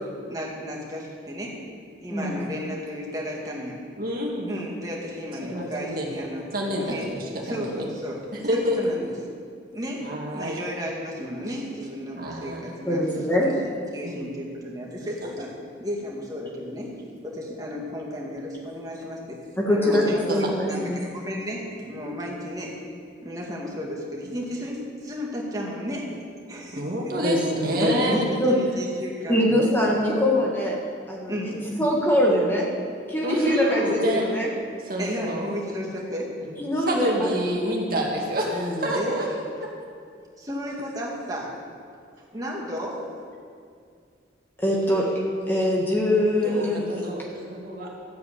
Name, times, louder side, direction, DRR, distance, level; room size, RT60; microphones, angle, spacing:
voice 1, 0.3-1.6 2.0-3.8 4.5-6.4 6.8-7.0 7.4-8.2 8.5-9.4 9.7-10.0 10.3-13.0 13.4-13.5 13.9-15.5 15.8-16.9 17.2-19.4 19.7-20.2 20.7-22.7 23.2-26.1 26.5-27.0 27.8-28.1 28.5-29.4 31.3-31.6 35.0-36.3 38.9-39.4 40.4-41.5 42.3-43.0, equal, 20° right, -3 dB, 2.4 m, -33 dB
voice 2, 2.1-2.5 12.8-13.5 19.6-21.0 27.2-28.6 29.3-30.8 31.1-31.3 31.7-32.7 33.1-34.5 36.6-37.3 38.5-38.9 44.6-45.1 45.5-46.9, left 1 dB, 10° left, -3 dB, 1.7 m, -23 dB
voice 3, 4.0-4.5 5.4-6.1 6.5-6.8 7.1-7.9 8.3-8.9 10.0-10.6 12.2-12.7 14.0-14.2 20.1-20.2 26.7-28.2 33.2-34.2 34.9-35.5 36.4-36.5 36.9-39.2 39.6-39.7 46.4-47.9, equal, 50° right, -2 dB, 2.3 m, -28 dB
13.0 x 8.6 x 8.5 m, 2.2 s
head